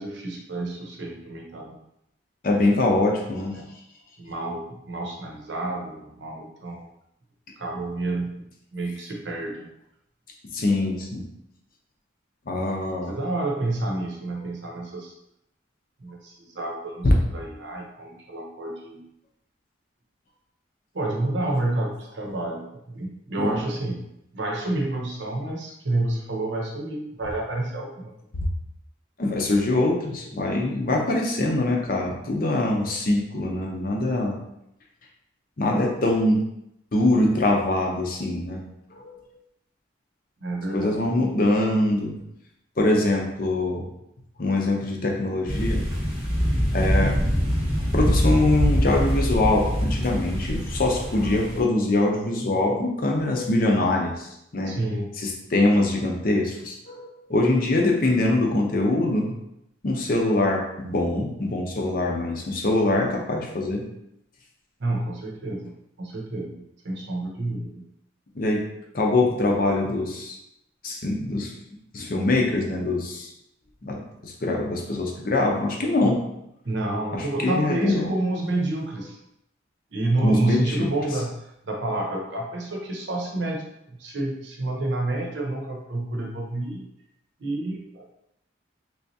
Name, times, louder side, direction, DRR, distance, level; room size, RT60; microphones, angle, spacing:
voice 1, 0.0-1.8 3.5-3.7 4.2-6.9 7.6-9.7 13.0-15.1 16.0-19.0 20.9-24.0 24.3-28.1 40.4-41.0 54.6-55.1 64.8-67.9 76.6-79.2 79.9-81.3 81.6-86.8 87.4-88.1, right 2 dB, 70° right, 0 dB, 0.7 m, -29 dB
voice 2, 2.4-3.6 10.5-11.3 12.5-13.1 23.4-23.6 28.3-28.5 29.2-34.4 35.6-36.4 36.9-38.6 38.9-39.1 40.7-42.2 42.8-43.9 44.4-45.8 46.7-47.2 47.9-54.8 55.2-59.4 59.8-63.8 68.3-68.6 68.9-70.4 70.8-71.5 71.9-73.3 73.8-76.2 77.1-78.1 80.2-80.9, left 2 dB, 50° left, 0 dB, 0.6 m, -23 dB
sound 1, 45.5-51.6, equal, 5° right, 0.8 m, -24 dB
3.4 x 3.0 x 2.7 m, 0.81 s
head